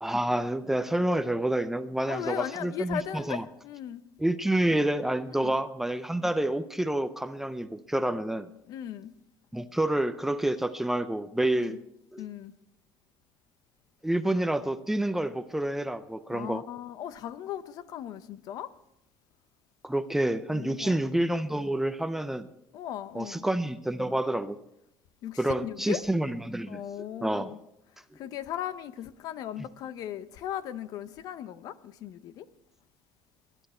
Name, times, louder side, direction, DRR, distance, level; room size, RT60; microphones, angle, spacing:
voice 1, 0.0-3.4 4.2-8.5 9.5-11.8 12.1-12.2 14.0-16.6 19.8-22.5 23.1-24.6 25.4-26.8 27.2-27.5, right 1 dB, 5° right, 0.5 m, -28 dB
voice 2, 2.1-4.0 5.3-5.5 8.7-9.1 11.6-11.8 12.2-12.5 16.3-18.7 20.5-21.0 22.7-23.5 25.2-26.0 26.7-27.6 28.1-32.5, left 10 dB, 60° left, 0.8 m, -37 dB
21.0 x 11.0 x 4.4 m
cardioid pair, 145°, 7 cm